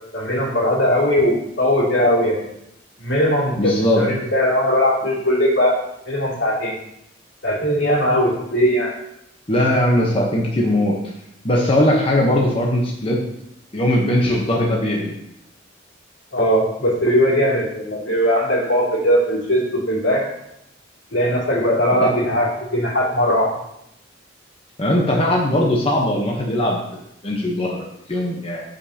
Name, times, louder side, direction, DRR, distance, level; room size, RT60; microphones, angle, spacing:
voice 1, 0.1-2.4 3.0-5.8 6.1-6.8 7.4-8.9 16.3-19.6 19.9-20.3 21.1-23.5, equal, 80° left, -4 dB, 2.8 m, -19 dB
voice 2, 3.6-4.0 9.5-11.0 11.4-13.2 13.7-15.1 22.0-22.1 24.8-26.8 27.2-28.6, left 1 dB, 30° left, -2 dB, 1.0 m, -19 dB
13.0 x 5.2 x 2.9 m, 0.78 s
head